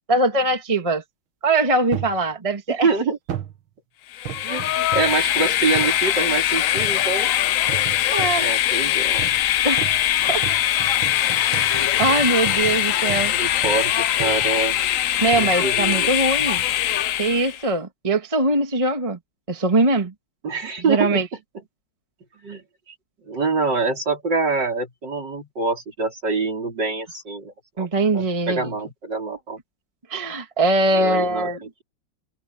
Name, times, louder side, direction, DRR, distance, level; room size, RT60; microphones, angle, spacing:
voice 1, 0.1-1.0 1.4-2.9 7.8-8.5 9.6-10.4 11.4-13.3 15.2-16.6 17.2-19.2 19.5-20.1 20.9-21.3 27.8-28.7 30.1-31.6, right 2 dB, 20° right, 1.6 m, -22 dB
sound 1, 1.9-2.2 3.3-3.6 4.3-5.2 5.8-6.0 6.8-7.1 7.7-8.5 9.2-9.5 9.8-13.4 13.6-13.9 14.2-14.6 15.3-15.6 16.4-16.7 17.3-17.4, right 10 dB, 85° right, 2.3 m, -34 dB
voice 2, 2.7-3.2 4.4-7.3 8.4-9.2 13.0-14.8 15.4-16.1 20.4-21.2 22.4-22.9 23.3-27.9 28.1-29.6 30.9-31.8, right 4 dB, 60° right, 5.0 m, -25 dB
Train, 4.1-17.6, left 12 dB, 85° left, 0.7 m, -21 dB
omnidirectional pair, 2.1 m